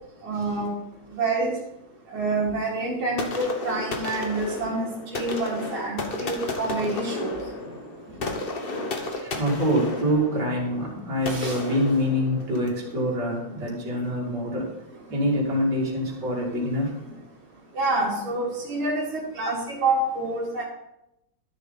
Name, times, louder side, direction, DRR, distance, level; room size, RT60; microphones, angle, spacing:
voice 1, 0.2-0.7 1.1-1.5 2.1-4.9 5.1-7.3 11.3-11.5 17.8-19.0 19.4-20.6, right 2 dB, 85° right, -3 dB, 3.0 m, -27 dB
sound 1, 3.2-12.8, left 2 dB, 35° left, 1.1 m, -33 dB
voice 2, 9.1-14.7 15.1-16.9, equal, 55° right, -4 dB, 3.1 m, -26 dB
12.0 x 7.1 x 4.0 m, 0.86 s
omnidirectional pair, 2.2 m